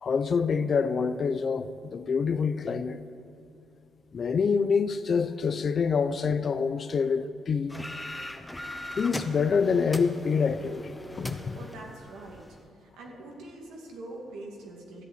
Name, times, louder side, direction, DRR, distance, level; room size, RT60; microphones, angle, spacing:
voice 1, 0.0-3.0 4.1-7.7 9.0-11.6, left 5 dB, 45° left, 0.6 m, -26 dB
sound 1, 7.7-12.6, left 1 dB, 10° left, 0.8 m, -40 dB
voice 2, 11.3-12.4 12.8-15.0, right 2 dB, 90° right, 2.4 m, -44 dB
13.5 x 8.2 x 8.3 m
cardioid pair, 90°, 0 cm